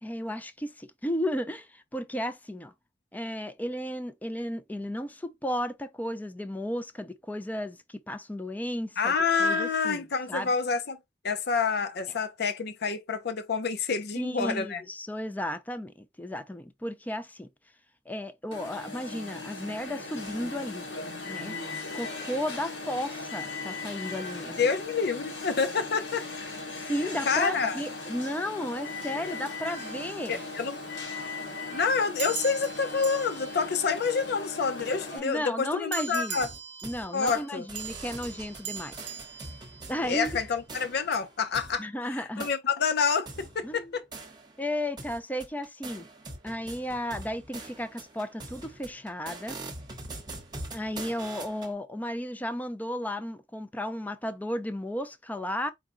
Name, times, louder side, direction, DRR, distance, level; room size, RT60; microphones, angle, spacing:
voice 1, 0.0-2.7 3.1-10.5 14.2-17.5 18.1-20.9 21.2-21.6 21.9-24.7 26.7-30.4 35.1-36.4 36.8-38.9 39.9-40.3 41.8-42.5 43.6-43.9 44.6-46.1 46.4-49.6 50.7-55.7, equal, 10° left, 0.4 m, -34 dB
voice 2, 9.0-11.0 11.2-14.8 24.6-26.3 27.3-27.8 30.3-30.8 31.7-36.5 37.1-37.6 40.0-41.9 42.2-44.0, left 5 dB, 60° left, 0.6 m, -28 dB
Alarm, 18.5-35.2, left 3 dB, 75° left, 1.8 m, -38 dB
sound 1, 29.7-30.9 32.2-34.9 35.9-40.4, right 9 dB, 65° right, 0.7 m, -42 dB
sound 2, 36.4-37.4 37.7-41.8 42.4-42.6 43.3-44.7 45.0-51.7, right 2 dB, 25° right, 1.0 m, -43 dB
4.7 x 2.2 x 3.7 m
head